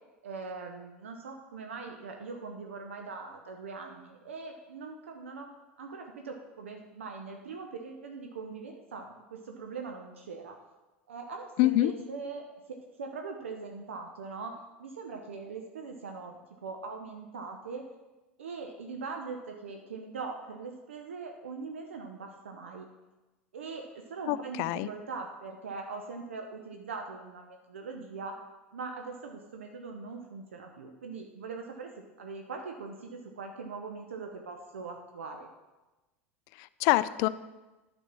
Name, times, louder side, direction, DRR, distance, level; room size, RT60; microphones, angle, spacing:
voice 1, 0.2-5.5 5.8-10.5 11.1-17.9 18.4-22.9 23.5-28.4 28.7-31.9 32.2-35.5, right 4 dB, 70° right, 3 dB, 0.7 m, -41 dB
voice 2, 11.6-11.9 24.3-24.9 36.6-37.3, left 17 dB, 45° left, 16 dB, 0.4 m, -25 dB
11.0 x 4.4 x 6.0 m, 1.1 s
figure-of-eight pair, 80°, 7 cm